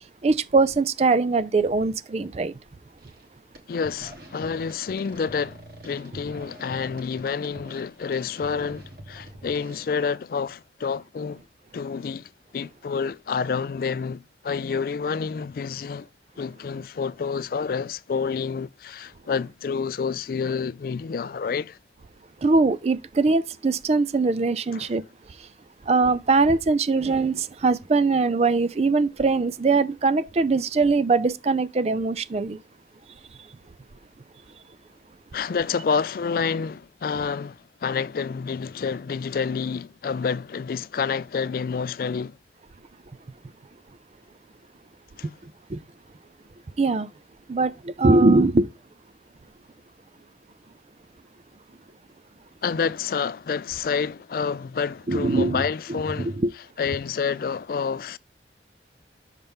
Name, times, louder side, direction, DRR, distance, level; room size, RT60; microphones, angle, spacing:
voice 1, 0.2-2.5 22.4-25.0 25.9-32.6 45.7-45.8 46.8-47.1 47.5-48.7 55.1-55.7 56.2-56.5, right 3 dB, 35° right, 0.4 m, -21 dB
sound 1, 3.0-3.3 3.6-9.8, right 1 dB, 55° right, 1.3 m, -45 dB
voice 2, 3.7-11.4 11.7-16.1 16.4-21.8 24.7-24.9 35.3-42.4 45.2-45.3 52.6-56.4 56.8-58.2, left 5 dB, 50° left, 0.3 m, -28 dB
6.6 x 5.8 x 3.5 m
head